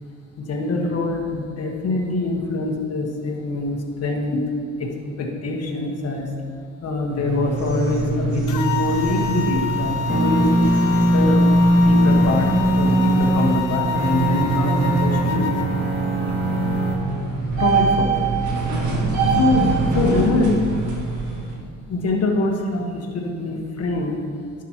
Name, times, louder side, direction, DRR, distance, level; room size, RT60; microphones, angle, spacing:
voice 1, 0.4-4.4 4.8-4.9 5.2-6.3 6.8-10.5 11.0-11.5 11.8-15.5 17.6-18.2 18.6-18.7 19.0-20.7 21.9-24.2, left 2 dB, 55° left, 0 dB, 1.4 m, -24 dB
sound 1, 7.1-21.5, right 4 dB, 80° right, 1.6 m, -25 dB
sound 2, 8.5-15.7, left 8 dB, 90° left, 0.5 m, -28 dB
sound 3, 10.1-13.5 13.9-16.9, right 1 dB, 35° right, 2.2 m, -19 dB
11.5 x 6.3 x 2.9 m, 2.2 s
cardioid pair, 90°, 30 cm